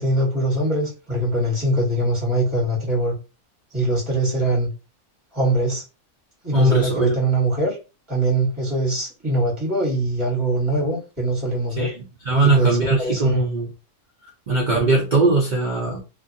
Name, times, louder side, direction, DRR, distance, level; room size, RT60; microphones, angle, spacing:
voice 1, 0.0-3.1 3.7-4.7 5.3-5.8 6.4-7.8 8.1-11.9 12.4-13.4, right 1 dB, 20° right, 1.5 m, -22 dB
voice 2, 6.5-7.2 11.8-13.7 14.5-16.0, right 3 dB, 60° right, 0.5 m, -20 dB
2.7 x 2.6 x 2.5 m
omnidirectional pair, 1.5 m